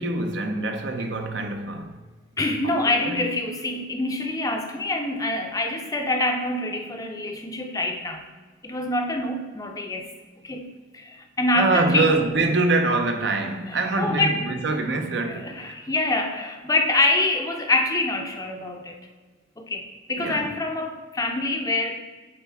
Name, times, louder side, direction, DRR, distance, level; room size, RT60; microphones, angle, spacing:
voice 1, 0.0-1.9 2.6-2.7 3.0-3.2 11.5-15.7 20.2-20.5, right 2 dB, 60° right, 0.7 m, -24 dB
voice 2, 2.4-8.3 8.6-10.1 10.4-10.6 10.9-12.1 13.7-14.5 15.3-19.0 19.6-22.0, left 2 dB, 20° left, 0.5 m, -26 dB
8.6 x 4.1 x 3.5 m
head